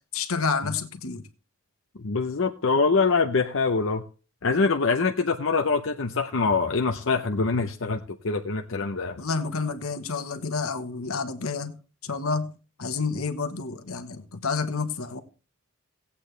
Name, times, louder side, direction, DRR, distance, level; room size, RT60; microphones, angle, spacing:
voice 1, 0.1-1.2 9.2-12.5 12.8-15.2, left 4 dB, 80° left, 1.1 m, -29 dB
voice 2, 2.0-4.0 4.4-9.2, left 4 dB, 65° left, 0.7 m, -24 dB
17.0 x 8.5 x 3.3 m
head